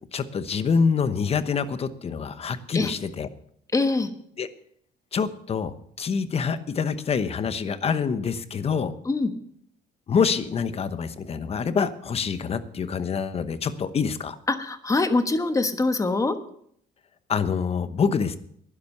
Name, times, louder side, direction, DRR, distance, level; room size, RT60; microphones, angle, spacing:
voice 1, 0.1-3.3 4.4-4.5 5.1-8.9 10.1-14.4 17.3-18.4, left 6 dB, 35° left, 13 dB, 1.0 m, -26 dB
voice 2, 3.7-4.1 9.0-9.3 14.5-16.4, left 3 dB, 20° left, 9 dB, 1.2 m, -23 dB
12.0 x 10.5 x 6.7 m, 0.66 s
cardioid pair, 110°, 17 cm